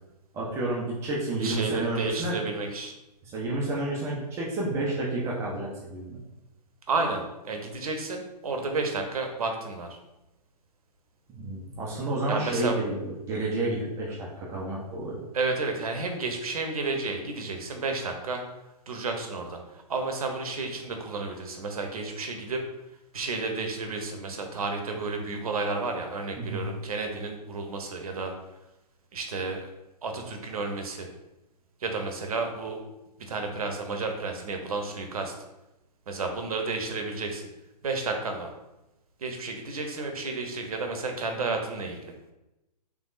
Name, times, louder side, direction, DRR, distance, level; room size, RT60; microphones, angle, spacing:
voice 1, 0.3-2.4 3.2-6.2 11.3-15.3 26.3-26.6, right 2 dB, 15° right, -4 dB, 0.4 m, -30 dB
voice 2, 1.4-2.9 6.9-10.0 12.3-12.8 15.3-18.4 18.9-19.6 19.9-22.6 23.1-28.3 29.1-29.7 30.0-31.1 31.8-32.8 33.3-35.3 36.1-37.5 37.8-38.5 39.2-42.1, right 3 dB, 60° right, 4 dB, 0.7 m, -31 dB
3.4 x 3.3 x 2.5 m, 0.96 s
figure-of-eight pair, 120°, 21 cm